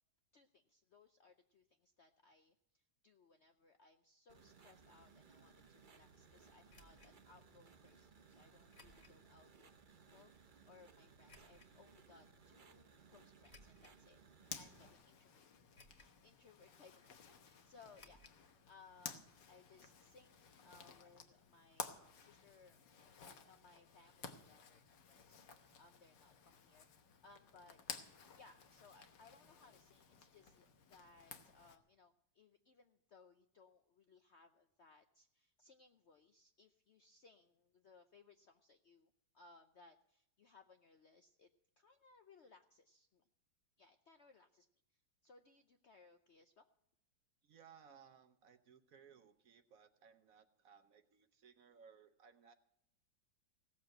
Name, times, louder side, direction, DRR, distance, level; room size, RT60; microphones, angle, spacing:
voice 1, 0.3-14.2 14.6-28.1 28.3-41.5 41.8-43.3 43.8-44.7 44.9-46.6, left 4 dB, 60° left, 7 dB, 0.7 m, -66 dB
sound 1, 4.3-14.9, right 5 dB, 35° right, 0.8 m, -64 dB
sound 2, 6.7-7.1 8.7-9.2 9.7-9.8 11.3-11.7 13.4-14.0 14.6-14.7 15.7-16.2 16.5-16.6 17.9-18.4 18.7-18.8 19.0-19.1, left 2 dB, 35° left, 2.2 m, -63 dB
Zipper (clothing), 14.4-31.8, left 7 dB, 75° left, 1.8 m, -54 dB
voice 2, 47.4-52.5, right 7 dB, 60° right, 9 dB, 1.0 m, -63 dB
17.0 x 7.3 x 7.6 m, 0.80 s
omnidirectional pair, 1.9 m